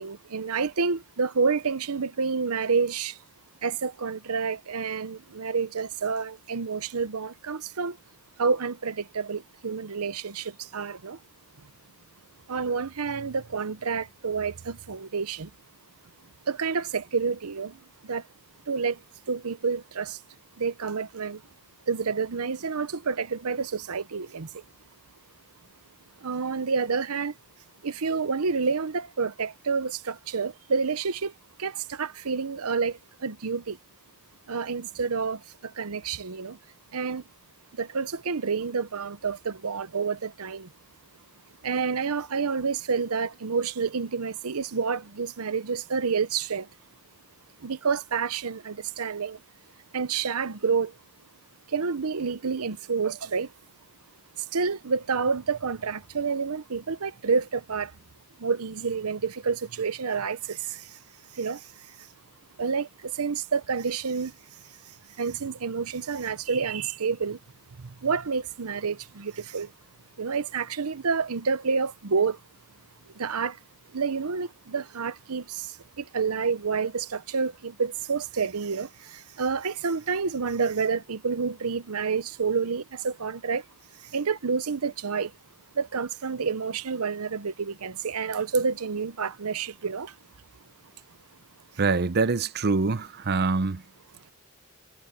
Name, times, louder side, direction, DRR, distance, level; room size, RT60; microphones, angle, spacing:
voice 1, 0.0-3.1 3.6-8.0 8.4-11.2 12.5-15.5 16.5-17.7 18.1-18.2 18.7-19.0 19.3-20.2 20.6-21.4 21.9-24.5 26.2-27.3 27.8-31.3 31.6-33.8 34.5-35.4 35.8-36.6 36.9-37.2 37.8-40.7 41.6-46.7 47.6-49.4 49.9-50.9 51.7-53.5 54.5-57.9 58.4-60.6 61.4-61.6 62.6-62.9 63.2-64.3 65.2-67.4 68.0-69.7 70.2-72.4 73.2-73.5 73.9-75.7 76.0-78.9 79.4-83.6 84.1-85.3 85.8-90.1, right 5 dB, 80° right, 0.8 m, -28 dB
voice 2, 91.8-93.8, right 4 dB, 50° right, 0.7 m, -24 dB
head